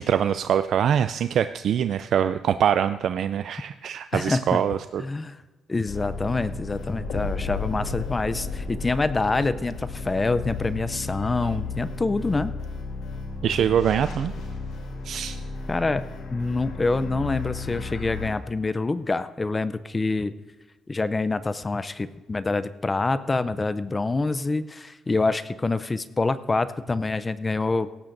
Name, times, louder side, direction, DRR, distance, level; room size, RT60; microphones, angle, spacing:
voice 1, 0.0-5.0 13.4-14.3 15.0-15.4, right 9 dB, 70° right, 11 dB, 0.3 m, -24 dB
voice 2, 4.1-4.6 5.0-5.4 5.7-12.5 15.7-16.0 16.3-20.3 20.9-27.9, left 3 dB, 25° left, 14 dB, 0.5 m, -26 dB
sound 1, 5.8-18.3, left 4 dB, 85° left, 2.8 m, -33 dB
17.0 x 14.5 x 2.6 m, 1.2 s
cardioid pair, 90°, 0 cm